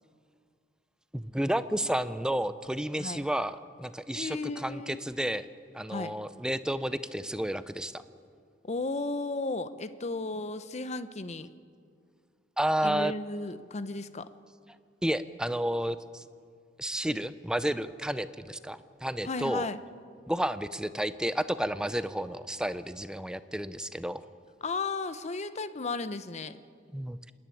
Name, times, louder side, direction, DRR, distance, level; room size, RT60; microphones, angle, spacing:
voice 1, 1.1-5.5 5.7-8.0 12.6-13.1 15.0-16.2 16.8-19.7 20.3-24.2 26.9-27.2, right 1 dB, 5° right, 13 dB, 0.5 m, -31 dB
voice 2, 4.1-5.0 5.9-6.1 8.6-11.5 12.8-14.3 19.2-19.8 24.6-26.6, left 3 dB, 35° left, 13 dB, 0.7 m, -34 dB
26.5 x 11.0 x 9.9 m, 2.2 s
head